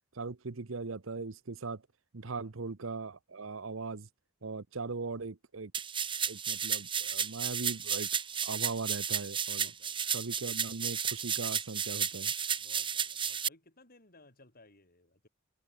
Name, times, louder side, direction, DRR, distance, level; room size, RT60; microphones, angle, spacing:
voice 1, 0.1-1.8 2.1-4.1 4.4-5.7 6.3-8.1 8.4-9.7 10.1-12.3, right 3 dB, 70° right, 0.9 m, -39 dB
sound 1, 5.7-13.5, right 7 dB, 25° right, 1.2 m, -33 dB
voice 2, 9.5-10.5 12.6-15.3, left 2 dB, 45° left, 6.9 m, -61 dB
head